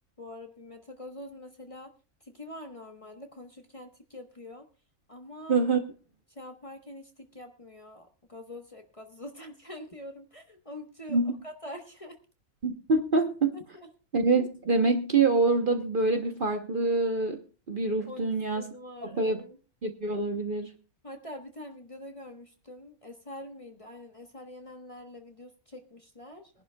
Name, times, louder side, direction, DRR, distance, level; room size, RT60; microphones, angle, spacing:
voice 1, 0.2-1.9 2.2-4.7 5.1-5.6 6.3-12.2 13.5-13.9 18.1-19.6 21.0-26.6, left 1 dB, 25° left, 4 dB, 1.1 m, -45 dB
voice 2, 5.5-5.8 11.1-11.3 12.6-13.6 14.1-17.4 17.7-18.7 19.0-19.4 19.8-20.7, right 3 dB, 45° right, 5 dB, 0.9 m, -26 dB
22.5 x 11.0 x 2.2 m, 0.33 s
omnidirectional pair, 1.5 m